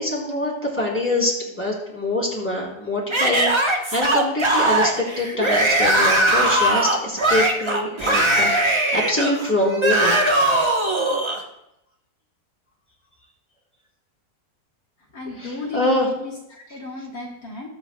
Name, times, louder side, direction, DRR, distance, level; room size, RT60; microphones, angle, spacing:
voice 1, 0.0-10.5 15.4-16.1, left 1 dB, 5° left, -4 dB, 3.7 m, -25 dB
Yell / Screaming, 3.1-11.4, right 1 dB, 20° right, 0.9 m, -20 dB
voice 2, 15.1-17.7, left 2 dB, 55° left, -4 dB, 2.2 m, -34 dB
21.0 x 8.1 x 2.3 m, 0.84 s
omnidirectional pair, 1.9 m